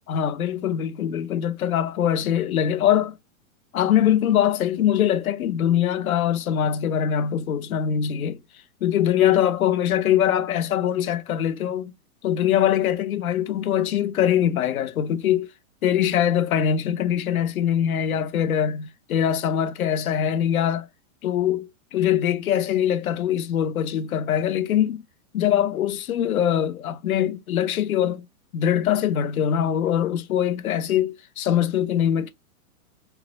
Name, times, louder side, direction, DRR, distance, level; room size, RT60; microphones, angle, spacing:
voice 1, 0.1-3.2 3.7-8.4 8.8-11.9 12.2-15.5 15.8-20.9 21.2-25.0 25.3-28.3 28.5-32.3, left 10 dB, 75° left, 1.1 m, -22 dB
4.7 x 2.2 x 3.1 m
hypercardioid pair, 170°, 43 cm